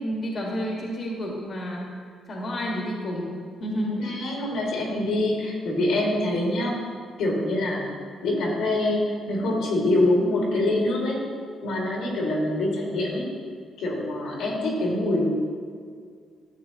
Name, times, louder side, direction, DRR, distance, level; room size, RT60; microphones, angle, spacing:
voice 1, 0.0-1.9 2.3-3.3 3.6-4.1, equal, 50° left, -2 dB, 1.7 m, -30 dB
voice 2, 3.9-6.8 7.2-7.9 8.2-11.2 11.6-13.3 13.8-15.3, left 1 dB, 80° left, -2 dB, 2.1 m, -25 dB
12.0 x 7.2 x 2.9 m, 2.1 s
cardioid pair, 90°, 0 cm